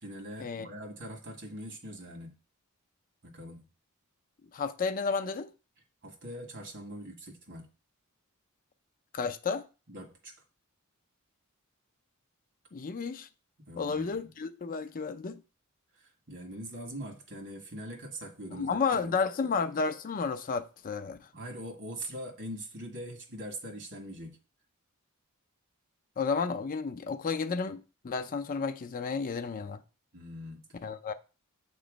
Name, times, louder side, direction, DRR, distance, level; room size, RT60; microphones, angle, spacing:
voice 1, 0.0-2.3 3.2-3.7 6.0-7.7 9.9-10.3 13.7-14.3 16.0-19.2 21.3-24.4 30.1-30.7, equal, 55° right, 1.6 m, -42 dB
voice 2, 4.5-5.5 9.1-9.6 12.7-13.3 13.8-15.4 18.5-21.2 26.2-29.8 30.8-31.1, left 5 dB, 40° left, 0.4 m, -32 dB
7.7 x 3.1 x 5.0 m
head